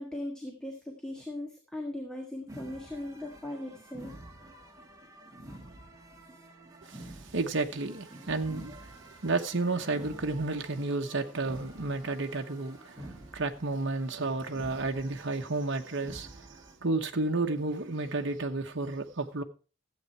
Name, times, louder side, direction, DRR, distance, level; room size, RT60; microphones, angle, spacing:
voice 1, 0.0-4.1, left 1 dB, 5° left, 1.5 m, -39 dB
sound 1, 2.5-16.7, right 1 dB, 15° right, 1.8 m, -49 dB
voice 2, 6.9-8.7 9.2-16.5 16.8-19.4, right 3 dB, 60° right, 1.1 m, -32 dB
14.0 x 8.3 x 4.5 m
head